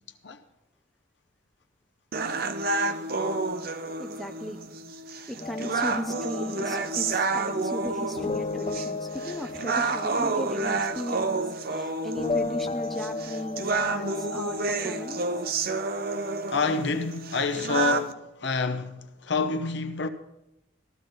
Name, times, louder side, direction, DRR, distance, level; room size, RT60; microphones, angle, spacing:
sound 1, 2.1-18.1, right 3 dB, 45° right, 0.6 m, -30 dB
voice 1, 4.0-4.6 5.3-15.2, equal, ahead, 0.7 m, -37 dB
sound 2, 5.4-15.5, left 3 dB, 30° left, 0.3 m, -35 dB
voice 2, 16.5-20.1, left 4 dB, 55° left, 0.8 m, -28 dB
14.5 x 13.5 x 3.9 m
head